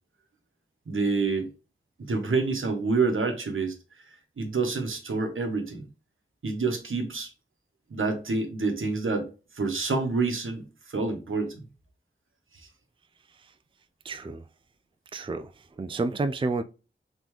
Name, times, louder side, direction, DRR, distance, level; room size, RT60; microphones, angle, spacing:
voice 1, 0.9-1.5 2.0-3.7 4.4-5.8 6.4-7.3 7.9-9.3 9.5-11.6 12.5-12.7, right 4 dB, 75° right, 1.0 m, -27 dB
voice 2, 14.0-14.4 15.1-15.5 15.8-16.6, right 3 dB, 25° right, 0.4 m, -29 dB
3.7 x 3.7 x 3.0 m
wide cardioid pair, 50°, 21 cm